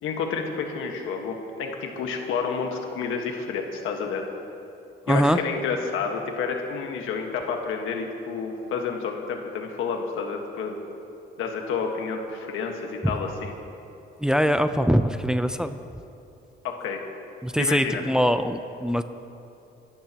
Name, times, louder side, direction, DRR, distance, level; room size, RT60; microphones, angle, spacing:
voice 1, 0.0-4.3 5.1-10.8 11.4-13.5 16.6-17.0 17.6-18.0, left 5 dB, 85° left, 3 dB, 1.6 m, -30 dB
voice 2, 5.1-5.4 14.2-15.8 17.4-19.0, equal, 5° right, 9 dB, 0.6 m, -22 dB
23.5 x 13.0 x 3.0 m, 2.7 s
cardioid pair, 90°, 20 cm